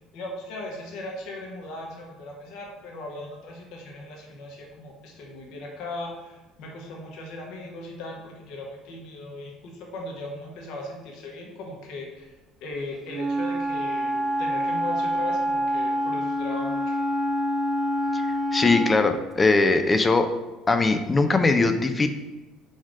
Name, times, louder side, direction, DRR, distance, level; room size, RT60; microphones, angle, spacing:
voice 1, 0.1-12.3 12.6-17.0, left 2 dB, 60° left, 0 dB, 1.2 m, -38 dB
Wind instrument woodwind instrument, 13.1-19.2, equal, 25° right, 0.6 m, -26 dB
voice 2, 18.5-20.3 20.7-22.1, left 3 dB, 25° left, 8 dB, 0.5 m, -21 dB
4.7 x 4.2 x 5.1 m, 1.1 s
figure-of-eight pair, 60°, 0 cm